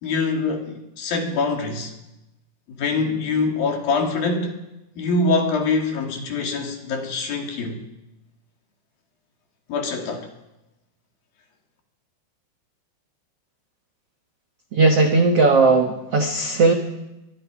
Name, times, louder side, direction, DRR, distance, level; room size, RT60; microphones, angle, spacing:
voice 1, 0.0-1.9 2.8-4.6 5.0-7.8 9.7-10.3, left 3 dB, 60° left, 2 dB, 4.1 m, -24 dB
voice 2, 14.7-16.7, right 3 dB, 70° right, 4 dB, 1.4 m, -17 dB
23.5 x 23.0 x 5.0 m, 0.97 s
omnidirectional pair, 5.0 m